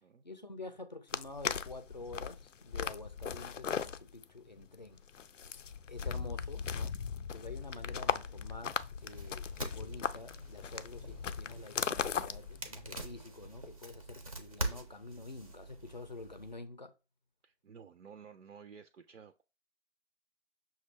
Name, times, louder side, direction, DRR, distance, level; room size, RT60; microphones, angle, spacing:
voice 1, 0.2-5.0 5.9-6.9 7.3-16.9, left 2 dB, 40° left, 0.5 m, -48 dB
sound 1, 1.1-13.2, left 7 dB, 85° left, 0.5 m, -38 dB
sound 2, 9.0-16.5, right 1 dB, 30° right, 0.5 m, -44 dB
voice 2, 17.4-19.4, right 6 dB, 75° right, 0.6 m, -53 dB
6.1 x 2.3 x 3.2 m
figure-of-eight pair, 160°, 37 cm